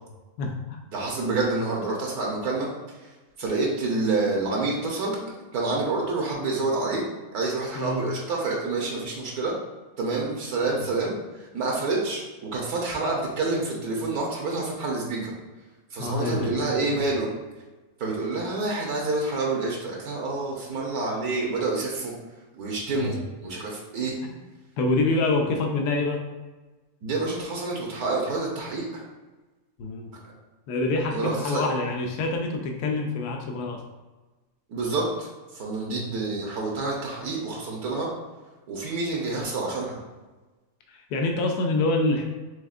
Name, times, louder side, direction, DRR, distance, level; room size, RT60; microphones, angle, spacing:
voice 1, 0.4-0.8 7.8-8.0 16.0-17.0 22.9-23.1 24.8-26.2 29.8-30.1 30.7-33.8 35.9-36.2 40.9-42.2, left 2 dB, 85° left, 2 dB, 1.1 m, -26 dB
voice 2, 0.9-2.7 3.4-5.2 5.5-7.0 7.3-9.5 10.0-11.1 11.5-15.3 15.9-17.3 18.0-22.1 22.6-23.2 23.4-24.2 27.0-29.0 31.1-31.7 34.7-35.3 35.5-38.1 38.7-40.0, right 3 dB, 75° right, -2 dB, 1.3 m, -28 dB
5.1 x 3.5 x 2.4 m, 1.2 s
omnidirectional pair, 1.6 m